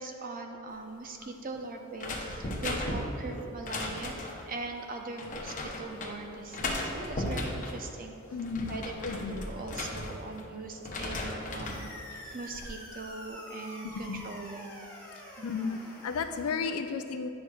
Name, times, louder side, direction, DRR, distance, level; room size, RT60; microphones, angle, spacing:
voice 1, 0.0-8.1 8.7-11.8 12.1-14.8 15.4-15.5, right 3 dB, 40° right, 3 dB, 0.6 m, -41 dB
sound 1, 2.0-4.5 5.2-6.1 6.5-7.8 8.3-10.5 10.8-11.9 12.3-12.7, left 1 dB, 40° left, 0.7 m, -36 dB
voice 2, 8.3-8.8 9.0-9.5 11.2-11.4 14.1-14.2 15.4-17.3, left 5 dB, 85° left, 8 dB, 0.4 m, -34 dB
sound 2, 11.6-16.6, left 1 dB, 5° left, 1.6 m, -47 dB
9.4 x 6.3 x 2.3 m, 2.6 s
head